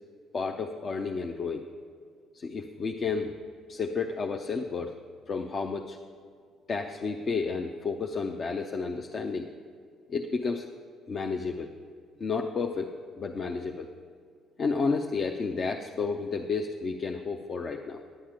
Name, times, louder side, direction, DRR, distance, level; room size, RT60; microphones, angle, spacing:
voice 1, 0.3-1.6 2.3-3.3 3.7-4.9 5.3-6.0 6.7-9.5 10.1-10.7 11.1-11.7 12.2-13.9 14.6-18.0, left 4 dB, 45° left, 3 dB, 0.6 m, -31 dB
10.5 x 8.7 x 5.0 m, 2.2 s
hypercardioid pair, 50°, 0 cm